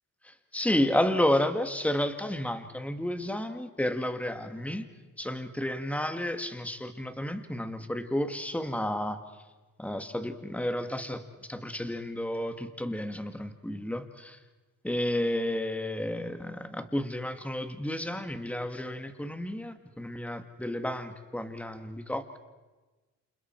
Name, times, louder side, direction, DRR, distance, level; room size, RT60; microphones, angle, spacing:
voice 1, 0.2-4.9 5.2-9.2 9.8-14.4 14.8-22.4, left 1 dB, 5° left, 8 dB, 1.8 m, -31 dB
29.0 x 27.5 x 4.5 m, 1.2 s
cardioid pair, 90°, 30 cm